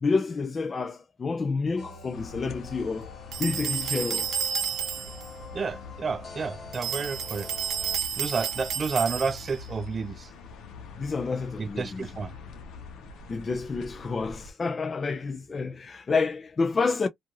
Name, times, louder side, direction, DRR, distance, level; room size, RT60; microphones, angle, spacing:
voice 1, 0.0-3.1 3.4-4.3 11.0-12.1 13.3-17.1, left 4 dB, 35° left, 0.5 m, -29 dB
sound 1, 1.8-8.0, left 3 dB, 60° left, 1.0 m, -46 dB
sound 2, 2.1-14.5, left 5 dB, 85° left, 0.9 m, -44 dB
sound 3, 3.3-5.3 6.7-9.6, right 8 dB, 75° right, 0.7 m, -31 dB
voice 2, 5.5-7.5 8.2-10.3 11.6-12.3, right 5 dB, 40° right, 0.4 m, -30 dB
2.6 x 2.4 x 3.0 m
cardioid pair, 90°, 0 cm